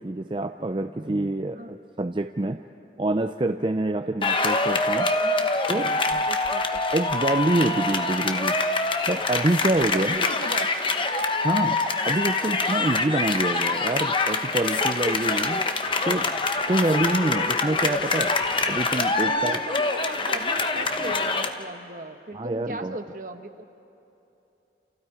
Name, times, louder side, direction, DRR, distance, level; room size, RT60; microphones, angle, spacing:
voice 1, 0.0-2.6 3.0-5.1 5.7-6.2 6.9-8.6 9.1-10.2 11.4-15.7 16.0-16.3 16.7-18.4 18.6-19.6 22.3-22.9, right 2 dB, 25° right, 7 dB, 0.4 m, -26 dB
sound 1, 4.2-21.5, left 3 dB, 30° left, 0.9 m, -25 dB
voice 2, 5.1-5.5 5.9-6.8 9.6-10.7 19.1-23.6, right 2 dB, 45° right, 6 dB, 1.1 m, -37 dB
28.5 x 28.5 x 4.9 m, 2.9 s
head